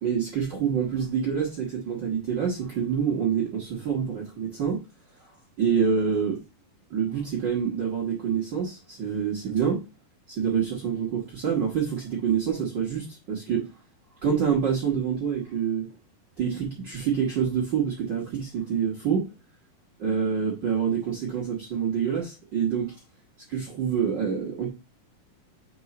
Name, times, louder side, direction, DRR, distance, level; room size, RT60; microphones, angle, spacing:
voice 1, 0.0-4.8 5.2-5.3 5.6-6.4 6.9-9.8 10.3-13.7 14.2-15.9 16.4-19.3 20.0-22.9 23.5-24.7, right 7 dB, 60° right, 1.1 m, -26 dB
4.8 x 4.7 x 4.1 m
omnidirectional pair, 3.9 m